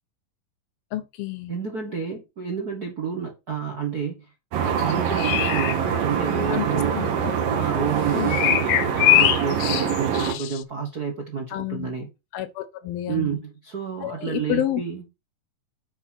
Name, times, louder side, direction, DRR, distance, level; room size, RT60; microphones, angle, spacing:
voice 1, 0.9-1.6 6.5-7.3 8.1-8.4 11.5-11.9 12.3-13.4 14.0-14.8, left 13 dB, 90° left, 3.0 m, -30 dB
voice 2, 1.5-4.3 4.6-7.0 7.5-12.1 13.1-15.1, right 6 dB, 55° right, 1.0 m, -29 dB
sound 1, 4.5-10.3, right 7 dB, 75° right, 3.3 m, -25 dB
sound 2, 4.8-5.8 8.3-10.6, left 14 dB, 75° left, 2.0 m, -22 dB
9.0 x 4.4 x 5.9 m
omnidirectional pair, 4.1 m